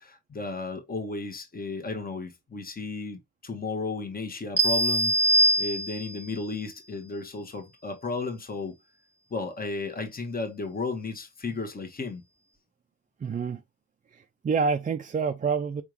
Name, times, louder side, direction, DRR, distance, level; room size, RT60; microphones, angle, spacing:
voice 1, 0.0-8.7 9.3-12.2, left 3 dB, 30° left, 1.4 m, -34 dB
sound 1, 4.6-6.3, right 1 dB, 10° left, 1.5 m, -23 dB
voice 2, 13.2-13.6 14.1-15.8, right 5 dB, 25° right, 0.5 m, -27 dB
5.0 x 3.5 x 3.0 m
cardioid pair, 90°, 30 cm